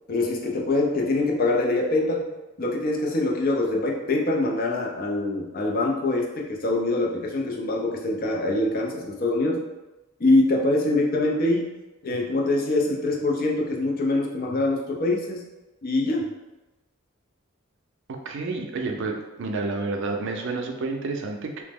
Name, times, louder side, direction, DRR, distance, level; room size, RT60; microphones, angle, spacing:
voice 1, 0.1-2.3 2.6-9.6 10.2-11.8 12.0-15.5 15.8-16.3, left 2 dB, 45° left, 0 dB, 0.4 m, -24 dB
voice 2, 18.1-21.6, right 3 dB, 60° right, 3 dB, 0.4 m, -30 dB
3.0 x 2.0 x 3.4 m, 1.1 s
head